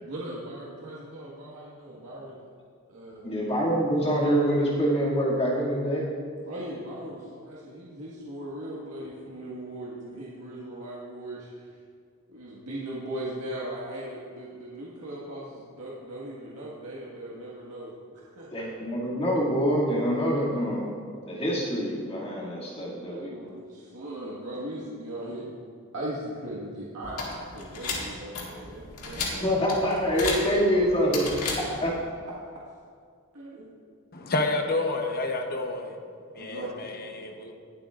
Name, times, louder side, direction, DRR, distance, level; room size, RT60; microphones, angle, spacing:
voice 1, 0.0-2.4 2.9-3.3 6.4-11.7 12.3-18.7 23.1-25.4 25.9-29.5 32.3-32.4 33.3-33.7 36.3-36.7, right 1 dB, 85° right, -6 dB, 1.7 m, -39 dB
voice 2, 3.2-6.1 18.5-20.9 21.3-23.3 29.4-31.3 31.6-32.0, equal, 25° left, -6 dB, 2.3 m, -25 dB
sound 1, 27.0-32.0, left 3 dB, 85° left, 2.0 m, -34 dB
voice 3, 34.1-36.0 36.4-37.5, left 2 dB, 45° left, 4 dB, 0.9 m, -29 dB
20.0 x 7.7 x 2.5 m, 2.1 s
head